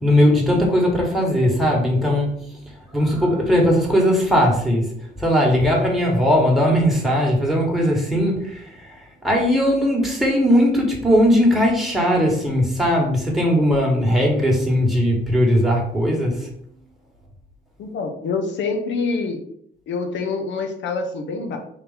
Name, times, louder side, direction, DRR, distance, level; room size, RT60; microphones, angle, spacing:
voice 1, 0.0-2.3 2.9-4.9 5.2-8.9 9.2-16.5, equal, ahead, -2 dB, 1.4 m, -18 dB
voice 2, 17.8-19.4 19.9-21.6, left 4 dB, 70° left, 5 dB, 0.8 m, -26 dB
4.1 x 2.7 x 3.9 m, 0.68 s
cardioid pair, 90°, 20 cm